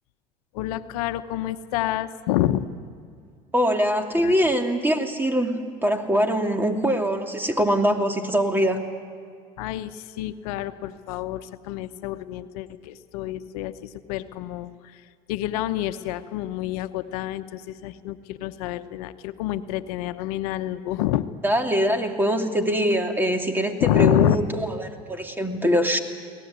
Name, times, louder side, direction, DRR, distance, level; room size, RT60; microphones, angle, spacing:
voice 1, 0.5-2.7 4.2-4.5 9.6-15.0 15.3-21.3 23.8-24.4, left 14 dB, 80° left, 11 dB, 0.9 m, -27 dB
voice 2, 3.5-5.5 5.8-8.8 21.4-26.0, equal, 10° right, 4 dB, 2.7 m, -23 dB
22.5 x 18.0 x 9.7 m, 2.2 s
supercardioid pair, 85°, 19 cm